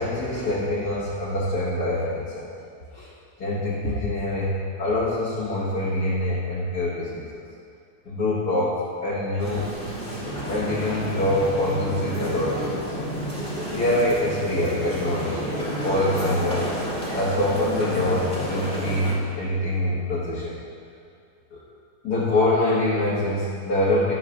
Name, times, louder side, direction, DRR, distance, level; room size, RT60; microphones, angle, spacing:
voice 1, 0.0-2.5 2.9-3.1 3.4-7.4 8.1-9.7 10.3-13.0 13.7-15.5 15.8-16.7 17.1-20.6 21.5-21.6 22.0-24.1, left 1 dB, 70° left, -10 dB, 2.1 m, -25 dB
sound 1, 9.4-19.1, equal, 5° left, 2.0 m, -30 dB
17.5 x 7.5 x 2.4 m, 2.4 s
omnidirectional pair, 1.8 m